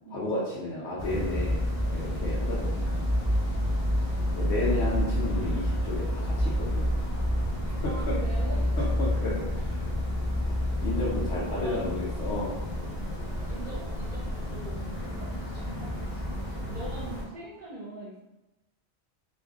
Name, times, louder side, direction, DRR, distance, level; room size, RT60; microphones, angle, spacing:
voice 1, 0.1-3.0 4.4-6.9 7.6-8.0 8.8-9.8 10.8-12.6, left 2 dB, 85° left, -6 dB, 1.0 m, -32 dB
sound 1, 1.0-17.2, equal, 15° left, 0.7 m, -29 dB
sound 2, 6.4-14.6, equal, 70° left, 0.3 m, -38 dB
voice 2, 7.8-8.7 11.3-11.8 13.5-18.2, right 2 dB, 50° right, -6 dB, 0.7 m, -42 dB
2.7 x 2.5 x 3.5 m, 0.97 s
omnidirectional pair, 1.2 m